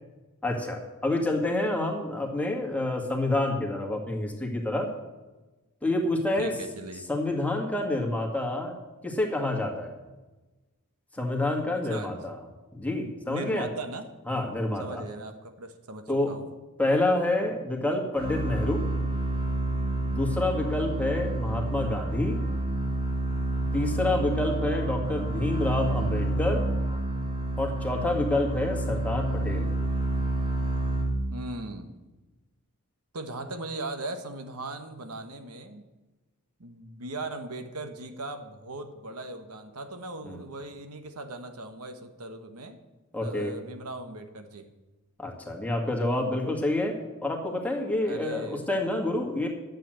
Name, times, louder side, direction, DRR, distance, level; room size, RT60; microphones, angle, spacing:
voice 1, 0.4-4.9 5.8-6.5 7.1-8.7 9.0-9.9 11.2-12.4 12.7-13.7 14.3-15.0 16.1-16.3 16.8-18.8 20.0-22.4 23.7-26.6 27.6-29.7 40.2-40.4 43.1-43.5 45.2-46.9 47.2-49.5, left 2 dB, 5° left, 1 dB, 1.9 m, -28 dB
voice 2, 6.4-7.1 11.9-12.1 13.2-14.1 14.8-16.5 31.3-31.9 33.1-35.8 36.6-42.8 43.2-44.7 48.0-48.6, right 2 dB, 80° right, 7 dB, 1.3 m, -38 dB
sound 1, 18.1-31.6, right 2 dB, 20° right, 2.1 m, -29 dB
11.5 x 7.8 x 7.7 m, 1.1 s
head